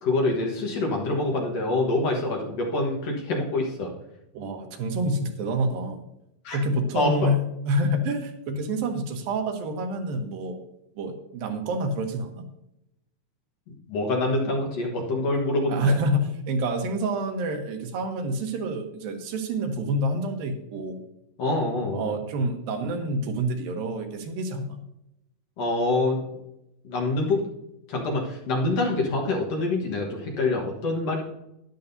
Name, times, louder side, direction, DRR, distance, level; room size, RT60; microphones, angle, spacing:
voice 1, 0.0-3.9 6.4-6.6 6.9-7.1 13.7-16.0 21.4-22.1 25.6-26.2 26.8-27.5 27.9-31.2, left 2 dB, 55° left, 0 dB, 2.2 m, -26 dB
voice 2, 4.3-6.0 6.5-10.6 11.0-12.5 15.7-21.0 21.8-24.8, right 1 dB, 90° right, 4 dB, 3.0 m, -27 dB
12.5 x 11.0 x 2.7 m, 0.85 s
omnidirectional pair, 4.0 m